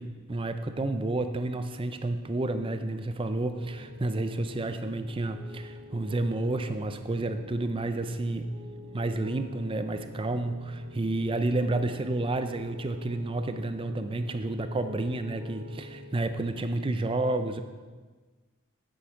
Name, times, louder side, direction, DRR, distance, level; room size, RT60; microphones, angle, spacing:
voice 1, 0.0-8.5 8.9-17.6, right 2 dB, 25° right, 9 dB, 0.5 m, -30 dB
Piano, 3.5-16.4, equal, 65° right, 1.5 m, -47 dB
8.5 x 7.8 x 4.7 m, 1.4 s
head